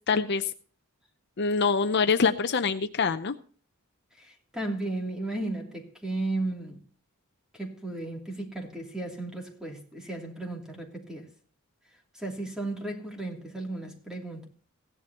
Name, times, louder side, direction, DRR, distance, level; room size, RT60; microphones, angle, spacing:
voice 1, 0.1-0.5 1.4-3.3, left 5 dB, 50° left, 0.6 m, -25 dB
voice 2, 4.2-6.8 7.5-11.3 12.1-14.5, right 2 dB, 5° right, 3.0 m, -35 dB
16.5 x 11.0 x 2.9 m
head